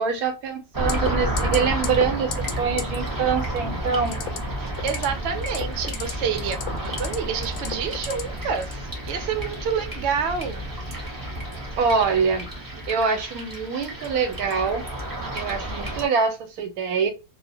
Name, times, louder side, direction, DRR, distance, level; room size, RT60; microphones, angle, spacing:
voice 1, 0.0-4.2 11.8-12.5 12.9-14.8 15.3-17.1, right 5 dB, 85° right, 1.1 m, -24 dB
sound 1, 0.7-16.1, right 1 dB, 25° right, 0.5 m, -31 dB
sound 2, 0.9-1.1 1.4-1.6 1.8-2.1 2.3-2.5 2.8-2.9 4.1-4.4 4.7-5.0 5.4-6.1 6.5-7.1 7.6-8.2 8.6-8.8, left 9 dB, 85° left, 1.1 m, -31 dB
voice 2, 4.6-10.6, right 6 dB, 60° right, 0.8 m, -28 dB
2.4 x 2.0 x 2.5 m
omnidirectional pair, 1.5 m